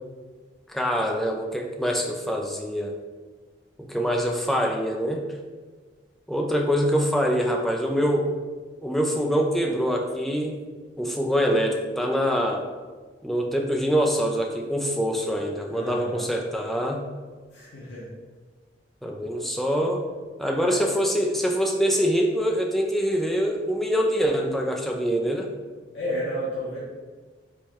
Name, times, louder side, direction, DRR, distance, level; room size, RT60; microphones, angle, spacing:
voice 1, 0.7-2.9 3.8-5.3 6.3-8.3 8.8-10.6 11.0-12.7 13.2-17.0 19.0-20.0 20.4-25.5, equal, ahead, 1 dB, 0.3 m, -24 dB
voice 2, 15.7-16.2 17.5-18.1 20.6-20.8 25.9-26.8, equal, 80° left, -8 dB, 0.8 m, -32 dB
4.6 x 2.2 x 2.8 m, 1.4 s
head